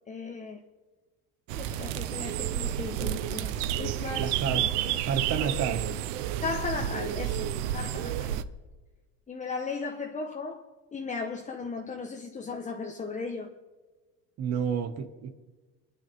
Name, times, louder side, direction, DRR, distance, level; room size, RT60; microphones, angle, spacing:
voice 1, 0.1-0.6 1.6-4.7 6.4-8.4 9.3-13.5, left 4 dB, 20° left, 1.3 m, -36 dB
sound 1, 1.5-8.4, right 11 dB, 85° right, 0.9 m, -31 dB
voice 2, 3.0-3.3 4.2-4.6 5.0-6.0 14.4-15.3, right 7 dB, 50° right, 2.0 m, -30 dB
28.5 x 11.0 x 3.7 m
supercardioid pair, 120°, 34 cm